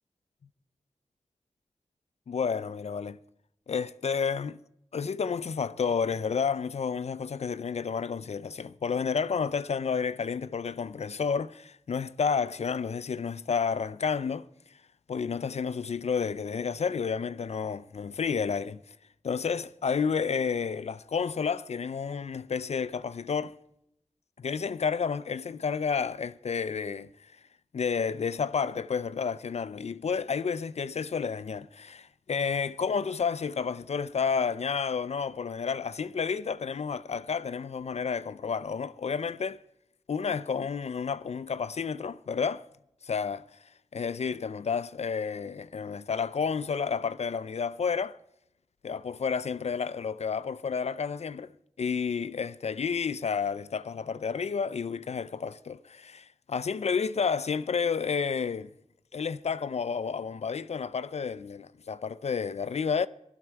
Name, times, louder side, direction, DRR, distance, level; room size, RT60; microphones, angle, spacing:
voice 1, 2.3-3.2 3.7-4.6 4.9-14.5 15.1-18.8 19.2-23.5 24.4-27.1 27.7-39.6 40.1-42.6 43.0-43.5 43.9-48.2 48.8-51.5 51.8-58.7 59.1-63.1, left 6 dB, 65° left, 0.4 m, -30 dB
16.5 x 12.0 x 4.6 m
wide cardioid pair, 95°, 12 cm